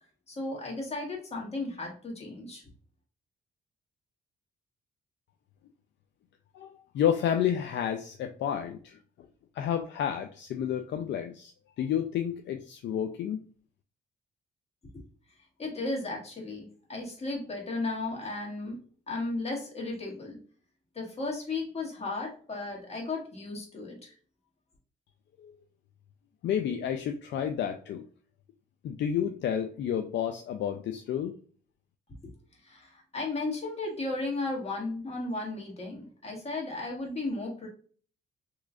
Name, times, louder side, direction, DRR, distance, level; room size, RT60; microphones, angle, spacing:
voice 1, 0.3-2.6 15.6-18.8 19.1-20.4 20.9-24.1 32.6-37.7, left 2 dB, 30° left, -1 dB, 1.6 m, -35 dB
voice 2, 6.5-9.0 9.5-11.5 11.8-13.4 25.4-25.5 26.4-28.0 28.8-31.4, left 9 dB, 65° left, 5 dB, 0.4 m, -30 dB
3.7 x 3.0 x 2.3 m, 0.44 s
cardioid pair, 90°, 20 cm